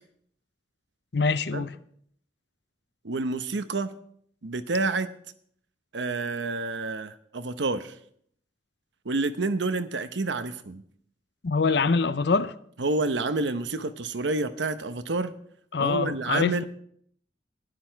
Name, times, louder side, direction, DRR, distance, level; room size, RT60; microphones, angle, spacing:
voice 1, 1.1-1.7 11.4-12.5 15.7-16.7, left 4 dB, 65° left, 0.6 m, -24 dB
voice 2, 3.0-3.9 4.4-5.1 5.9-7.9 9.0-10.8 12.8-15.4 15.8-16.7, right 3 dB, 85° right, 0.9 m, -28 dB
12.5 x 11.0 x 4.6 m
head